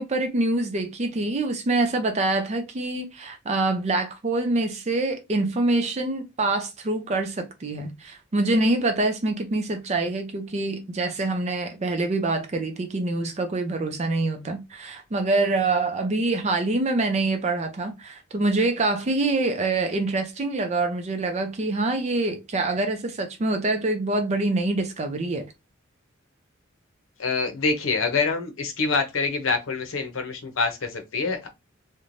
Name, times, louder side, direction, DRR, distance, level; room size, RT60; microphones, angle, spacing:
voice 1, 0.0-25.5, right 2 dB, 35° right, 0.4 m, -25 dB
voice 2, 27.2-31.5, left 4 dB, 75° left, 0.7 m, -26 dB
3.1 x 2.1 x 2.5 m
head